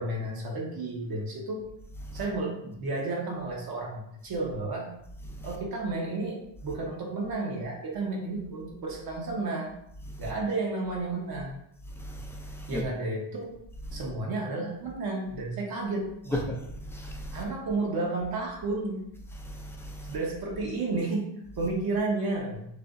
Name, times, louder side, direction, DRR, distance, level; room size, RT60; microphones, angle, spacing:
voice 1, 0.0-1.6 2.1-4.9 5.4-9.7 10.2-11.6 12.7-13.6 13.9-16.4 17.3-19.0 20.1-21.3 21.6-22.7, right 2 dB, 55° right, -2 dB, 1.1 m, -32 dB
voice 2, 12.0-12.8 16.3-16.6 16.9-17.4 19.5-20.1, equal, 5° left, 0 dB, 0.4 m, -35 dB
6.5 x 3.0 x 2.5 m, 0.77 s
cardioid pair, 175°, 43 cm